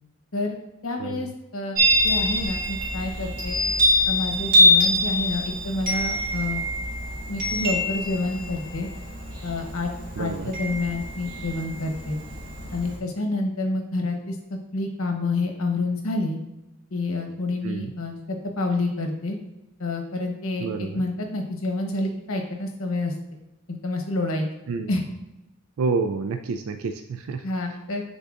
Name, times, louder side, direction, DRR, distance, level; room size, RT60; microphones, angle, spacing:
voice 1, 0.8-3.6 4.1-6.6 7.3-8.9 9.4-9.9 10.2-12.2 12.7-16.4 16.9-19.4 19.8-23.1 23.7-24.5 24.9-25.0 27.4-28.0, left 2 dB, 75° left, 3 dB, 1.1 m, -28 dB
Chime, 1.7-13.0, left 1 dB, 40° right, 2.0 m, -24 dB
voice 2, 10.2-10.5 17.6-17.9 20.6-21.0 24.7-24.9 25.8-27.8, right 4 dB, 70° right, 8 dB, 0.4 m, -29 dB
10.0 x 3.9 x 2.5 m, 0.95 s
head